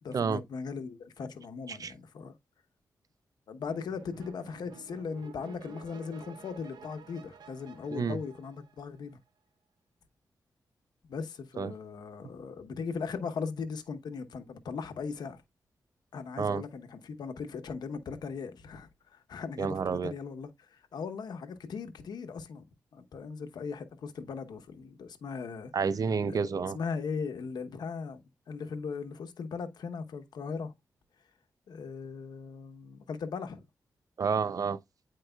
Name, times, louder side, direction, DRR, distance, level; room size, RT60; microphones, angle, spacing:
voice 1, 0.0-2.3 3.5-9.2 11.0-15.4 16.1-22.7 22.9-25.7 26.3-28.2 28.5-30.7 31.7-33.7, left 5 dB, 80° left, 1.0 m, -38 dB
sound 1, 3.7-9.1, right 7 dB, 90° right, 0.8 m, -52 dB
voice 2, 19.6-20.1 25.7-26.8 34.2-34.8, right 5 dB, 60° right, 0.5 m, -29 dB
8.9 x 4.7 x 2.3 m
cardioid pair, 65°, 7 cm